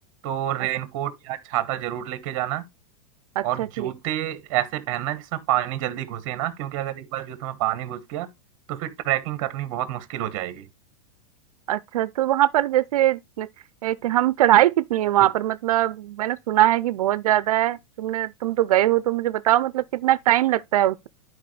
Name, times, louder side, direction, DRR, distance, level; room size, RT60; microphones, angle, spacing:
voice 1, 0.2-2.6 3.4-8.3 8.7-10.7, right 13 dB, 35° right, 1.1 m, -28 dB
voice 2, 3.4-3.9 11.7-13.5 13.8-21.1, right 14 dB, 80° right, 0.5 m, -21 dB
11.0 x 4.7 x 3.2 m
supercardioid pair, 175°, 19 cm